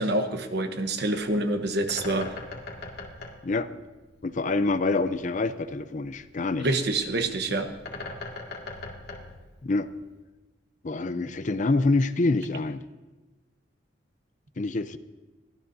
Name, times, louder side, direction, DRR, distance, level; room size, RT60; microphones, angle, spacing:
voice 1, 0.0-2.3 6.6-7.7, right 2 dB, 60° right, 7 dB, 1.1 m, -27 dB
Bird, 1.0-10.2, left 2 dB, 60° left, 2.1 m, -42 dB
voice 2, 4.2-6.7 9.6-9.9 10.8-12.8 14.6-15.0, left 3 dB, 40° left, 12 dB, 0.5 m, -26 dB
22.5 x 15.5 x 2.7 m, 1.2 s
head